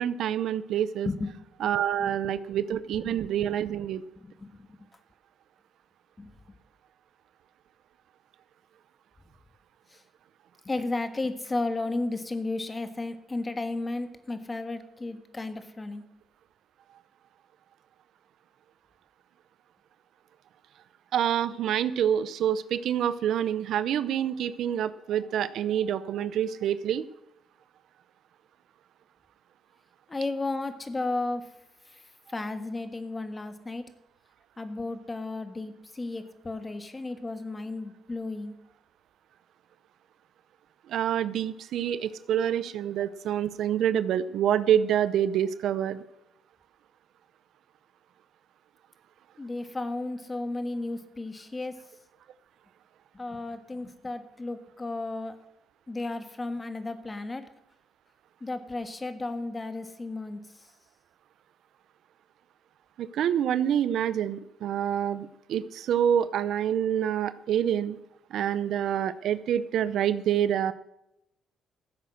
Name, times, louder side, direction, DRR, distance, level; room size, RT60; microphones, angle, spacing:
voice 1, 0.0-1.1 1.6-4.0 21.1-27.0 40.9-46.0 63.0-68.0 68.3-70.7, right 9 dB, 75° right, 15 dB, 0.6 m, -27 dB
voice 2, 4.2-4.7 6.2-6.3 9.9-10.0 10.6-16.0 30.1-31.5 31.8-32.0 32.3-33.8 34.6-38.5 49.4-51.8 53.1-55.3 55.9-57.5 58.4-60.7, left 2 dB, 20° left, 9 dB, 1.5 m, -34 dB
14.5 x 7.9 x 6.4 m, 0.86 s
cardioid pair, 90°, 0 cm